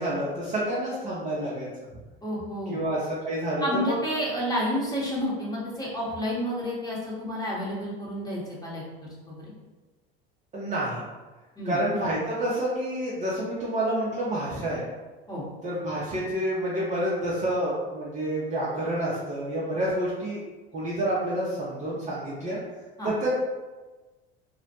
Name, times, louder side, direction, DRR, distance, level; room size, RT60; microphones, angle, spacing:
voice 1, 0.0-1.7 2.7-3.9 10.5-11.0 11.6-14.9 15.6-20.4 20.7-22.6 23.0-23.3, right 1 dB, 25° right, -7 dB, 0.5 m, -28 dB
voice 2, 2.2-2.8 3.6-9.5 11.6-11.8 15.3-15.4 23.0-23.1, equal, 10° left, -6 dB, 0.9 m, -30 dB
2.1 x 2.0 x 2.8 m, 1.2 s
hypercardioid pair, 75°, 31 cm